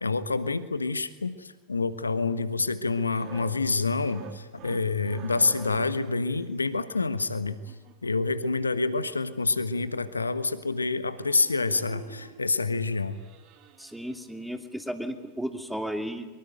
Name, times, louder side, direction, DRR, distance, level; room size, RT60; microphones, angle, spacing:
voice 1, 0.0-7.6 8.0-13.2, left 3 dB, 85° left, 14 dB, 1.3 m, -27 dB
sound 1, 3.0-6.2 7.2-8.3 9.5-9.6 9.8-9.9 10.2-10.4 10.7-10.9 11.2-12.5 12.9-14.6 15.0-15.2, right 9 dB, 40° right, 3.0 m, -48 dB
voice 2, 13.8-16.4, equal, ahead, 8 dB, 2.8 m, -34 dB
24.0 x 23.0 x 9.3 m, 1.2 s
figure-of-eight pair, 90°, 0 cm